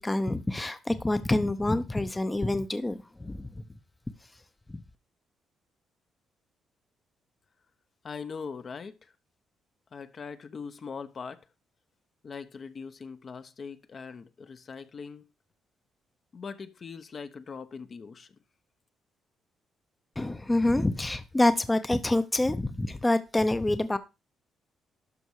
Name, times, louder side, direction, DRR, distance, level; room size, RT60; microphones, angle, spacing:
voice 1, 0.0-3.6 4.7-4.8 20.2-24.0, left 1 dB, 15° left, 0.8 m, -27 dB
voice 2, 8.0-9.1 9.9-11.4 12.2-15.3 16.3-18.3, left 5 dB, 45° left, 0.9 m, -41 dB
12.0 x 5.4 x 4.8 m
cardioid pair, 90°, 0 cm